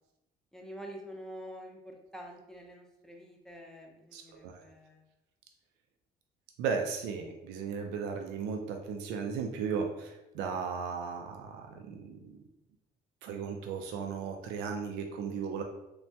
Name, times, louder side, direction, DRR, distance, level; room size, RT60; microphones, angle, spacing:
voice 1, 0.5-5.0, equal, 5° left, 0 dB, 0.5 m, -47 dB
voice 2, 4.1-4.5 6.6-12.3 13.2-15.6, right 6 dB, 90° right, 3 dB, 0.4 m, -36 dB
3.2 x 2.2 x 2.7 m, 0.93 s
cardioid pair, 110°, 17 cm